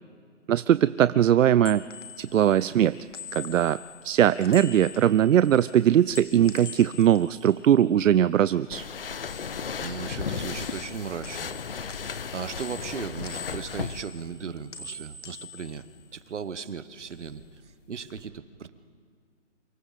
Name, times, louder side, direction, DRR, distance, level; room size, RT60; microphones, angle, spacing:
voice 1, 0.5-1.8 2.2-3.0 3.3-8.8, right 10 dB, 85° right, 16 dB, 0.5 m, -21 dB
sound 1, 1.3-8.6 8.9-10.3 10.6-16.6 16.9-18.2, left 5 dB, 70° left, 2.0 m, -45 dB
sound 2, 8.7-14.0, left 6 dB, 50° left, 0.8 m, -35 dB
voice 2, 9.8-11.5 12.1-15.9 16.1-17.4 17.9-18.7, right 6 dB, 65° right, 14 dB, 1.2 m, -37 dB
28.0 x 24.5 x 4.1 m, 2.1 s
hypercardioid pair, 170°, 38 cm